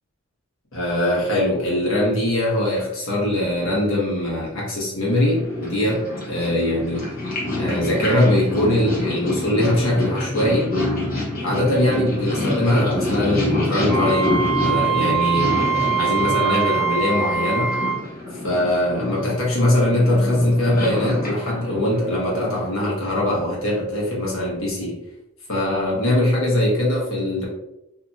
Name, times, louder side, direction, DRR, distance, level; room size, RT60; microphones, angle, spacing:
voice 1, 0.7-7.0 7.5-10.8 11.4-17.7 18.3-25.0 25.5-27.5, left 1 dB, 70° left, -4 dB, 1.1 m, -21 dB
Purr, 5.1-22.8, left 1 dB, 45° left, 1.0 m, -27 dB
Wind instrument woodwind instrument, 13.9-18.0, right 6 dB, 75° right, 0.6 m, -23 dB
2.8 x 2.5 x 2.6 m, 0.86 s
head